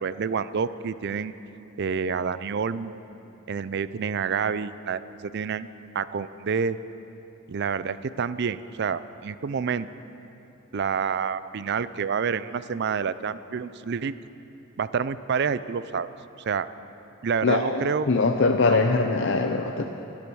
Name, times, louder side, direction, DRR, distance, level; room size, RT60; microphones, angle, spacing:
voice 1, 0.0-1.3 1.8-3.0 3.5-6.8 7.5-9.9 10.7-14.1 14.8-16.1 16.5-16.7 17.2-18.1 18.7-18.8, right 6 dB, 55° right, 15 dB, 0.4 m, -28 dB
voice 2, 17.4-17.8 18.1-19.9, left 3 dB, 60° left, 4 dB, 0.6 m, -22 dB
24.0 x 8.5 x 6.3 m, 2.9 s
head